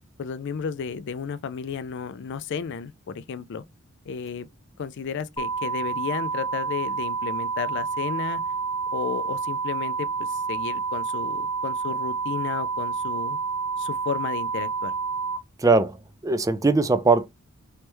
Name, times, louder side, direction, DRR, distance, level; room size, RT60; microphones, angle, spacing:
voice 1, 0.2-3.6 4.1-4.5 4.8-8.4 8.9-13.4 13.8-14.9, left 6 dB, 55° left, 0.4 m, -33 dB
sound 1, 5.4-15.4, right 5 dB, 25° left, 0.7 m, -29 dB
voice 2, 15.6-17.3, right 3 dB, 15° right, 0.3 m, -21 dB
3.3 x 3.2 x 3.0 m
head